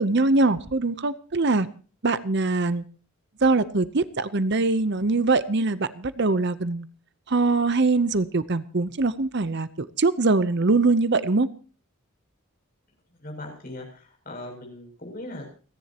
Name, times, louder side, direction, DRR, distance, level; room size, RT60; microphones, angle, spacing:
voice 1, 0.0-1.7 2.0-2.8 3.4-6.9 7.3-11.5, right 3 dB, 50° right, 15 dB, 0.8 m, -22 dB
voice 2, 13.2-15.5, left 1 dB, 40° left, 1 dB, 7.2 m, -39 dB
29.5 x 10.5 x 2.9 m, 0.39 s
head